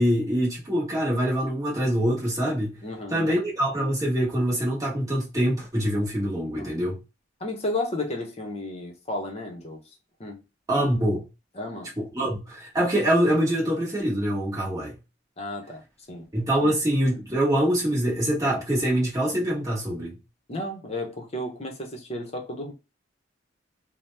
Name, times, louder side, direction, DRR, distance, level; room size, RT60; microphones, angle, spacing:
voice 1, 0.0-2.8 3.1-7.0 10.7-11.3 12.0-14.9 16.3-20.1, right 1 dB, 15° right, 1.0 m, -24 dB
voice 2, 2.8-3.4 6.6-6.8 7.4-9.8 10.2-10.4 11.5-11.9 12.2-12.3 15.4-15.8 16.1-16.3 16.6-16.7 20.5-22.7, left 1 dB, 30° left, 0.7 m, -33 dB
2.8 x 2.0 x 3.2 m
head